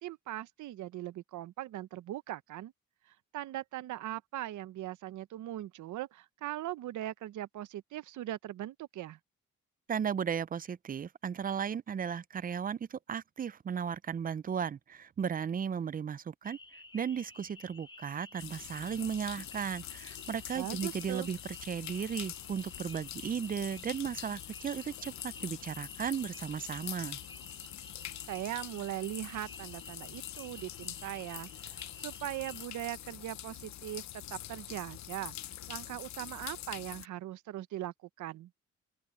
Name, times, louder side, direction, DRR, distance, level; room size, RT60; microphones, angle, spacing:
voice 1, 0.0-2.7 3.1-9.2 20.5-21.3 28.3-35.3 35.7-38.5, right 14 dB, 75° right, 0.9 m, -40 dB
voice 2, 9.9-27.2, right 7 dB, 30° right, 0.5 m, -35 dB
sound 1, 16.4-32.7, left 2 dB, 15° left, 2.0 m, -53 dB
sound 2, 18.4-37.1, left 12 dB, 65° left, 0.9 m, -45 dB
open air
cardioid pair, 90°, 30 cm